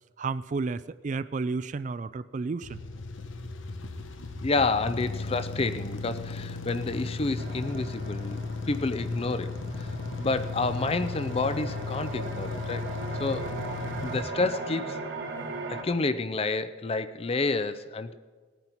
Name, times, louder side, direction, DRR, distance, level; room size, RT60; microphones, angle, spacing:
voice 1, 0.2-2.8, right 4 dB, 40° right, 15 dB, 0.3 m, -32 dB
sound 1, 2.6-14.2, left 3 dB, 85° left, 0.9 m, -36 dB
voice 2, 4.4-12.9 13.1-13.5 14.0-15.0 15.7-18.1, left 3 dB, 30° left, 13 dB, 0.5 m, -29 dB
sound 2, 7.4-15.8, right 3 dB, 85° right, 2.3 m, -39 dB
18.5 x 9.3 x 4.5 m, 1.5 s
head